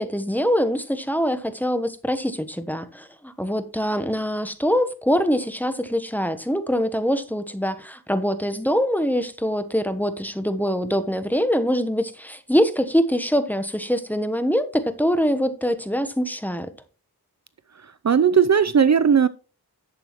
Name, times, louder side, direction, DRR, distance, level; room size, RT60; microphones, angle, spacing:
voice 1, 0.0-16.7, equal, 5° left, 1.1 m, -24 dB
voice 2, 18.0-19.3, right 7 dB, 45° right, 0.5 m, -17 dB
11.5 x 7.7 x 3.1 m
cardioid pair, 50°, 38 cm